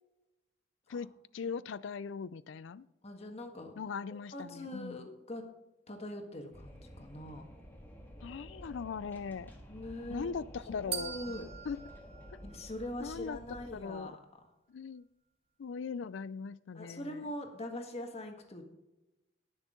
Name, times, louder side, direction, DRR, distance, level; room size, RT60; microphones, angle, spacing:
voice 1, 1.3-2.9 3.8-5.1 8.2-9.5 10.1-11.2 11.7-11.8 13.0-13.4 13.7-14.1 14.7-15.1 15.6-17.2, left 5 dB, 75° left, 19 dB, 0.4 m, -40 dB
voice 2, 3.0-3.8 4.1-5.5 5.9-7.5 9.7-10.3 10.8-11.5 12.4-14.3 16.7-18.8, left 1 dB, 35° left, 3 dB, 1.7 m, -43 dB
Wind, 6.5-13.8, equal, 10° left, 1.8 m, -51 dB
sound 1, 10.9-13.2, right 8 dB, 30° right, 1.0 m, -43 dB
19.0 x 6.4 x 3.8 m, 1.0 s
head